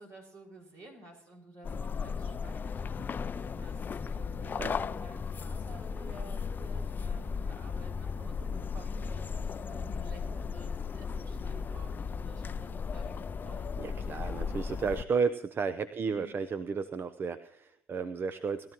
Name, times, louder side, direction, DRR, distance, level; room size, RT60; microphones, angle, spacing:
voice 1, 0.0-13.7 16.0-16.4, right 1 dB, 60° right, 0 dB, 5.8 m, -52 dB
sound 1, 1.6-15.1, left 5 dB, 35° left, 0.4 m, -36 dB
voice 2, 13.8-18.7, right 5 dB, 40° right, 12 dB, 0.7 m, -33 dB
20.5 x 13.0 x 3.0 m, 0.75 s
supercardioid pair, 70°, 6 cm